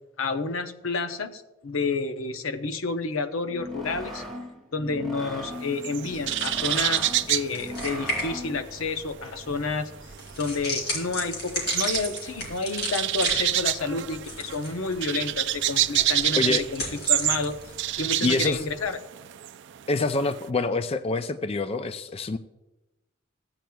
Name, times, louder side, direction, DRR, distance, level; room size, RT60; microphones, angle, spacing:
voice 1, 0.2-4.2 4.7-9.9 10.4-16.8 17.1-17.6 18.0-19.0, left 4 dB, 85° left, 9 dB, 0.8 m, -30 dB
sound 1, 3.4-8.7, equal, ahead, 1.5 m, -38 dB
sound 2, 5.5-8.6 8.9-20.4, right 14 dB, 60° right, 0.4 m, -28 dB
sound 3, 6.0-18.9, left 1 dB, 55° left, 3.4 m, -37 dB
voice 2, 18.2-18.7 19.9-22.4, left 3 dB, 30° left, 11 dB, 0.4 m, -26 dB
15.0 x 8.9 x 2.3 m, 0.99 s
head